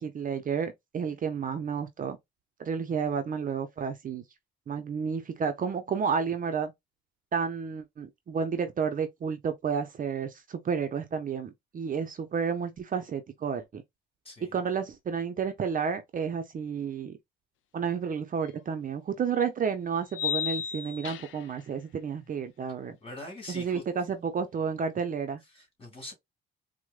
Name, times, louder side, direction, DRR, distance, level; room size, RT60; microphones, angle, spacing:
voice 1, 0.0-2.2 2.6-4.2 4.7-6.7 7.3-13.8 14.4-17.2 17.7-23.0 23.5-25.4, right 6 dB, 45° right, 0.6 m, -31 dB
voice 2, 14.2-14.5 22.4-22.5 23.0-23.8 25.5-26.1, left 2 dB, 30° left, 2.1 m, -43 dB
sound 1, 18.5-18.6 20.1-21.5, left 9 dB, 80° left, 0.5 m, -33 dB
4.5 x 2.1 x 2.3 m
cardioid pair, 90°, 20 cm